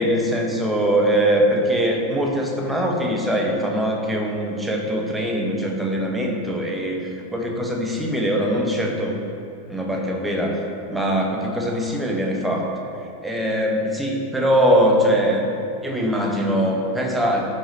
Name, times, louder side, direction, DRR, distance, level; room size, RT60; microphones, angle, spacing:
voice 1, 0.0-9.1 9.7-10.6 10.9-12.7 13.2-15.4 15.8-17.4, equal, 5° right, 0 dB, 1.3 m, -22 dB
14.5 x 7.4 x 3.0 m, 2.7 s
figure-of-eight pair, 90°, 0 cm